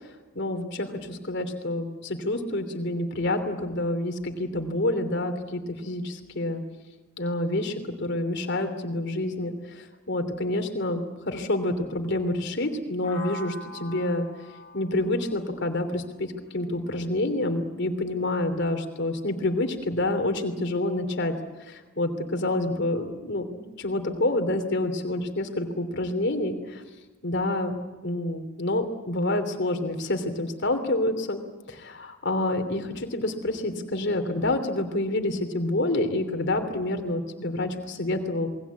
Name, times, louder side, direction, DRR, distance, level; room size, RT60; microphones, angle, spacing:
voice 1, 0.3-6.6 7.2-14.3 14.7-21.3 21.7-26.8 27.2-27.8 28.0-31.4 31.7-38.5, left 1 dB, 55° left, 6 dB, 3.1 m, -28 dB
sound 1, 13.0-16.9, left 2 dB, 35° left, 5.5 m, -43 dB
27.5 x 21.0 x 8.4 m, 1.2 s
head